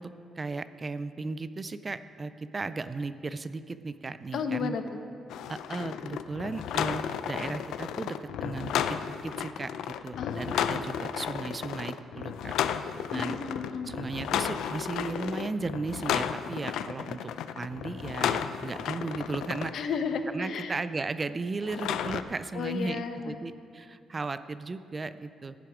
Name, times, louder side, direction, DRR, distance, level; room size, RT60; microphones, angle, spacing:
voice 1, 0.0-4.8 5.5-9.0 9.2-12.5 13.1-13.4 13.9-19.7 20.3-25.6, right 3 dB, 25° right, 13 dB, 0.4 m, -36 dB
voice 2, 4.3-5.0 10.2-11.0 13.1-13.9 19.7-20.7 22.5-23.4, left 5 dB, 65° left, 8 dB, 0.9 m, -33 dB
sound 1, 5.3-19.7 21.6-22.2, left 9 dB, 85° left, 0.4 m, -33 dB
15.5 x 9.2 x 4.9 m, 2.6 s
cardioid pair, 130°, 0 cm